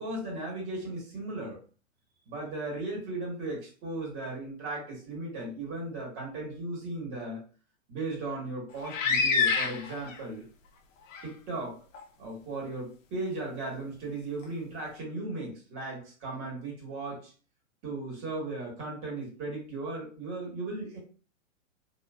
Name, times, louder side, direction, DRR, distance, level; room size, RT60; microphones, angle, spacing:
voice 1, 0.0-1.6 2.3-7.4 7.9-10.4 11.2-11.8 12.2-17.3 17.8-21.0, right 2 dB, 30° right, -2 dB, 1.6 m, -36 dB
sound 1, 8.8-10.2 11.1-11.2 11.9-12.0, left 5 dB, 70° left, 0.7 m, -26 dB
3.2 x 2.8 x 2.4 m, 0.38 s
hypercardioid pair, 140°, 39 cm